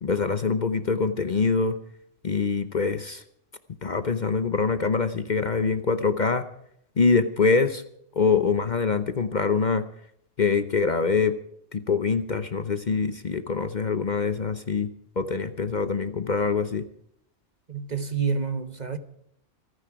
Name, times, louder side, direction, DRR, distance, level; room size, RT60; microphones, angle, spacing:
voice 1, 0.0-1.8 2.2-3.2 3.8-6.5 7.0-7.8 8.1-9.8 10.4-11.4 11.7-14.9 15.2-16.8, left 5 dB, 45° left, 0.9 m, -24 dB
voice 2, 17.7-19.0, right 5 dB, 40° right, 1.1 m, -28 dB
26.0 x 9.8 x 4.8 m
omnidirectional pair, 1.2 m